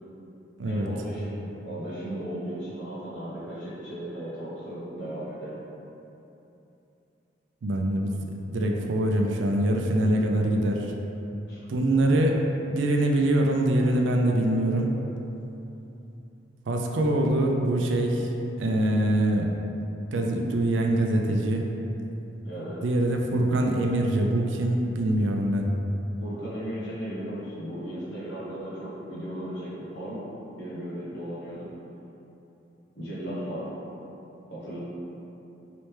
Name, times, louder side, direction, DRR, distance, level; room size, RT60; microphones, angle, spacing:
voice 1, 0.6-5.6 11.5-11.6 22.4-22.8 26.2-30.2 30.6-31.7 33.0-33.7 34.5-34.8, right 1 dB, 75° left, -9 dB, 0.9 m, -36 dB
voice 2, 7.6-8.2 8.5-10.9 11.7-14.9 16.7-18.3 18.6-19.5 20.1-21.7 22.8-25.7, right 1 dB, 80° right, 2 dB, 0.4 m, -24 dB
3.2 x 2.9 x 3.2 m, 3.0 s
head